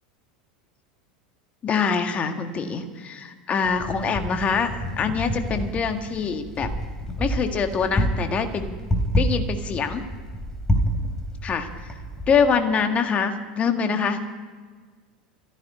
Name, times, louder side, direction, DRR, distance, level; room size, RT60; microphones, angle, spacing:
voice 1, 1.6-6.7 7.2-8.7 9.2-10.0 11.4-11.9 12.3-14.3, left 6 dB, 30° left, 7 dB, 1.8 m, -24 dB
Wind, 3.6-12.6, equal, 15° left, 3.1 m, -28 dB
14.5 x 10.0 x 9.5 m, 1.5 s
figure-of-eight pair, 85°, 4 cm